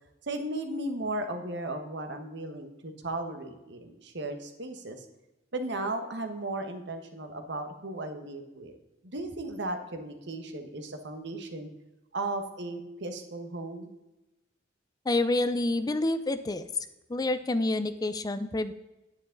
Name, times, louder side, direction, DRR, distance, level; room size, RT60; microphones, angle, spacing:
voice 1, 0.3-5.1 5.5-8.7 9.0-11.7 12.1-13.9, right 2 dB, 65° right, 6 dB, 1.4 m, -36 dB
voice 2, 15.1-16.7 17.1-18.7, left 2 dB, 20° left, 12 dB, 0.4 m, -28 dB
10.5 x 9.6 x 3.9 m, 0.99 s
head